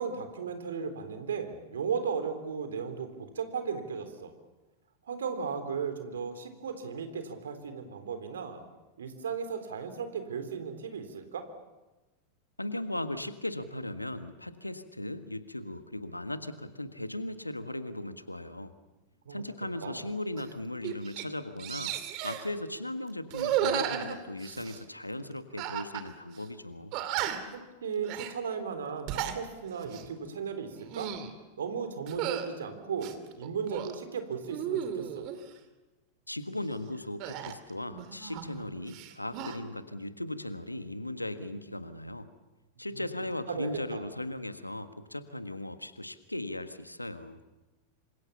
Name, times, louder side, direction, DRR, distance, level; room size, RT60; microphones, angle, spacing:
voice 1, 0.0-4.3 5.1-8.6 9.0-11.4 19.3-19.4 19.8-20.0 27.8-31.1 31.6-35.3 42.9-43.0 43.5-44.0, right 6 dB, 65° right, 8 dB, 3.6 m, -36 dB
voice 2, 12.6-18.7 19.3-21.9 22.2-26.9 36.3-42.3 42.8-47.4, left 1 dB, 85° left, 11 dB, 1.5 m, -37 dB
sound 1, 20.4-20.5 20.8-21.3 21.6-22.5 23.3-24.8 25.6-26.1 26.4-26.5 26.9-27.6 28.0-28.3 28.9-29.4 29.8-30.1 30.7-31.3 32.1-32.5 33.0-34.0 34.5-35.4 37.2-38.6 38.9-39.6, right 10 dB, 40° right, 2.5 m, -34 dB
27.0 x 26.0 x 7.1 m, 1.1 s
figure-of-eight pair, 90°, 0 cm